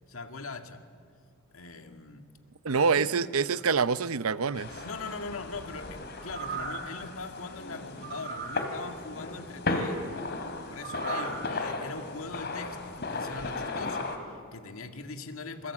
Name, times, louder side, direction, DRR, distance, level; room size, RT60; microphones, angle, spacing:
voice 1, 0.1-0.8 1.5-2.3 2.9-3.1 4.8-10.1 10.7-15.7, left 3 dB, 80° left, 6 dB, 2.1 m, -41 dB
voice 2, 2.6-4.7, right 5 dB, 85° right, 15 dB, 0.7 m, -26 dB
sound 1, 4.5-14.2, left 3 dB, 50° left, 3.0 m, -35 dB
sound 2, 6.2-7.0 8.0-8.7 10.8-11.5 11.9-12.0, right 6 dB, 50° right, 2.7 m, -37 dB
27.5 x 22.0 x 8.6 m, 2.1 s
head